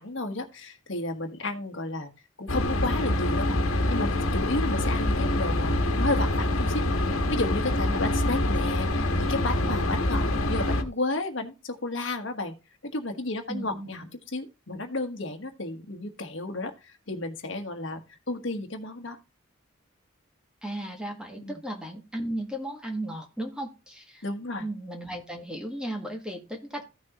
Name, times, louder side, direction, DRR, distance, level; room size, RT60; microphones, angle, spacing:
voice 1, 0.0-2.1 2.4-3.6 3.9-6.9 7.3-12.5 12.8-18.0 18.3-19.2 21.4-21.6 24.2-24.6, left 2 dB, 60° left, 1.5 m, -32 dB
sound 1, 2.5-10.8, left 1 dB, 90° left, 1.4 m, -25 dB
voice 2, 13.5-14.1 20.6-24.2 24.6-26.9, right 1 dB, 5° right, 1.6 m, -35 dB
14.5 x 6.3 x 3.0 m
head